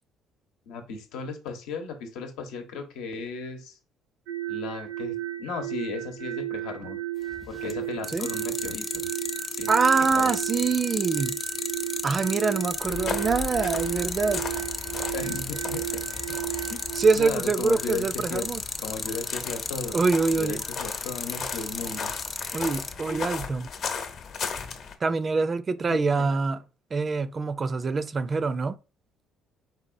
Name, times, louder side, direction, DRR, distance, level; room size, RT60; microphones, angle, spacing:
voice 1, 0.7-3.8 4.5-7.0 7.5-9.0 9.5-9.7 10.1-10.3 15.1-16.3 16.7-16.8 17.1-18.5 18.8-20.0 20.4-22.2 23.1-23.2 25.9-26.4, left 4 dB, 90° left, 1.0 m, -35 dB
sound 1, 4.3-17.1, right 14 dB, 80° right, 0.6 m, -34 dB
sound 2, 7.3-7.7 8.0-22.9, left 4 dB, 25° left, 0.6 m, -33 dB
voice 2, 9.7-11.4 12.0-14.4 16.9-18.6 19.9-20.6 22.5-23.7 25.0-26.6 26.9-28.8, right 4 dB, 30° right, 0.4 m, -25 dB
sound 3, 12.8-25.0, left 5 dB, 55° left, 0.9 m, -37 dB
4.6 x 4.0 x 2.6 m
cardioid pair, 115°, 0 cm